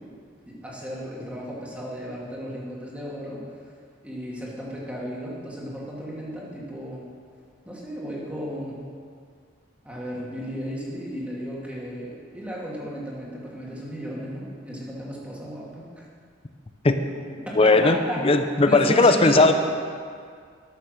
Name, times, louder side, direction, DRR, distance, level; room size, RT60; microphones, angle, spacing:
voice 1, 0.5-3.4 4.0-7.0 7.7-8.8 9.8-15.8 17.1-17.2 17.5-18.3 18.7-19.5, equal, 5° right, -5 dB, 2.1 m, -34 dB
voice 2, 17.6-18.0 18.2-19.5, left 3 dB, 30° left, 8 dB, 0.6 m, -17 dB
12.5 x 6.4 x 6.6 m, 2.1 s
head